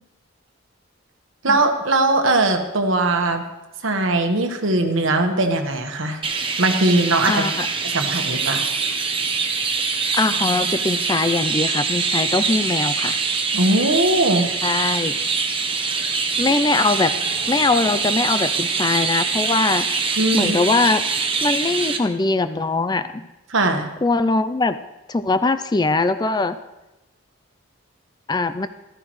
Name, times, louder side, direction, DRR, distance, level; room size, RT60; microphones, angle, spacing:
voice 1, 1.4-3.4 3.8-6.2 6.6-7.5 7.8-8.7 13.5-14.5 20.2-20.6 23.5-23.9, right 2 dB, 70° right, 5 dB, 1.3 m, -20 dB
Chirp tweet, 6.2-22.0, right 4 dB, 25° right, 0.9 m, -24 dB
voice 2, 7.2-7.7 10.1-13.2 14.6-15.2 16.4-21.0 21.4-23.3 24.0-24.8 25.1-26.6 28.3-28.7, left 3 dB, 20° left, 11 dB, 0.3 m, -21 dB
14.5 x 13.5 x 3.1 m, 1.0 s
head